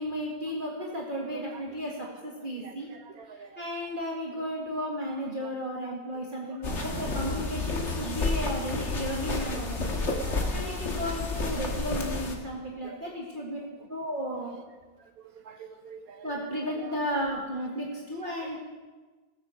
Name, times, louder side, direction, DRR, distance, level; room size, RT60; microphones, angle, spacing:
voice 1, 0.0-2.9 3.3-13.6 13.9-14.6 16.2-18.6, equal, 35° right, -3 dB, 1.9 m, -34 dB
voice 2, 2.6-3.6 5.8-5.9 6.8-7.0 10.1-10.8 12.8-13.0 15.0-15.1 15.4-16.2 16.8-16.9, right 6 dB, 80° right, 6 dB, 1.5 m, -46 dB
sound 1, 6.6-12.3, left 3 dB, 55° left, 1.8 m, -31 dB
19.0 x 8.2 x 6.2 m, 1.3 s
omnidirectional pair, 1.5 m